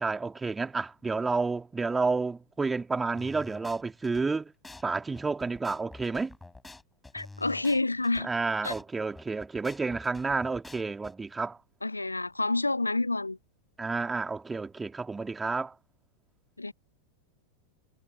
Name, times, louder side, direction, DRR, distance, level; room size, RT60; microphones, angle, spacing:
voice 1, 0.0-4.5 4.8-6.3 8.2-11.6 13.8-15.7, right 4 dB, 10° right, 2.8 m, -30 dB
sound 1, 3.2-4.2 4.6-4.8 5.1-8.2 8.6-8.8 9.1-11.1, left 2 dB, 10° left, 7.1 m, -48 dB
voice 2, 7.1-8.3 8.6-8.7 11.8-13.4 16.6-16.7, left 2 dB, 85° left, 1.0 m, -28 dB
figure-of-eight pair, 90°, 0 cm